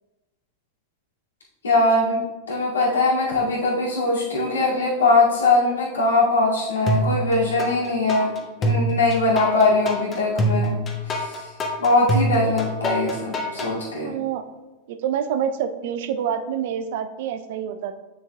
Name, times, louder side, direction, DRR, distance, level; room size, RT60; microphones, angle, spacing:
voice 1, 1.6-2.2 2.5-10.7 11.1-11.5 11.8-14.1, left 2 dB, 90° left, -6 dB, 2.2 m, -21 dB
sound 1, 6.9-7.7 8.1-13.7, right 1 dB, 30° left, 1.0 m, -24 dB
voice 2, 14.0-14.4 14.9-18.0, right 8 dB, 65° right, 10 dB, 0.5 m, -27 dB
7.2 x 6.7 x 2.3 m, 1.1 s
hypercardioid pair, 95°, 0 cm